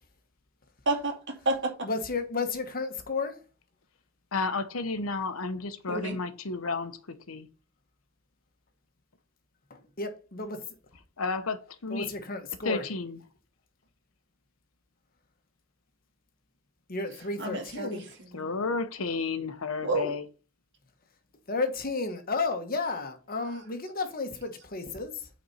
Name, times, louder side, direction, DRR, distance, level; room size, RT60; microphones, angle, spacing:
voice 1, 0.9-1.9 5.9-6.2 17.4-18.5 19.8-20.1, right 2 dB, 60° right, 2.3 m, -30 dB
voice 2, 1.8-3.4 9.7-10.6 11.9-12.8 16.9-18.0 21.5-25.3, left 3 dB, 45° left, 1.3 m, -32 dB
voice 3, 4.3-7.5 11.2-12.1 12.6-13.2 18.3-20.2, left 4 dB, 90° left, 1.0 m, -32 dB
8.8 x 4.3 x 4.2 m
head